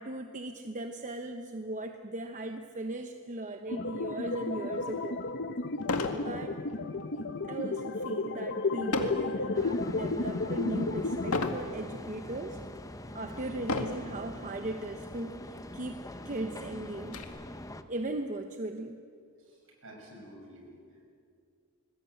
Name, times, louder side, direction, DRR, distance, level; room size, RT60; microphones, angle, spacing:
voice 1, 0.0-5.2 6.1-6.6 7.4-12.6 13.1-17.2 17.9-19.0, right 2 dB, 35° right, 6 dB, 1.0 m, -38 dB
sound 1, 3.7-11.5, left 3 dB, 55° left, 0.9 m, -33 dB
sound 2, 4.9-5.0 5.8-6.3 6.7-7.0 8.9-9.3 9.9-10.3 11.3-11.7 12.4-12.5 13.6-14.1 15.1-15.2 15.6-15.7 16.1-17.2, left 3 dB, 90° left, 2.0 m, -32 dB
sound 3, 9.5-17.8, left 1 dB, 15° left, 1.0 m, -44 dB
voice 2, 19.4-21.1, equal, 65° right, 1 dB, 7.2 m, -51 dB
26.5 x 21.0 x 8.1 m, 2.3 s
head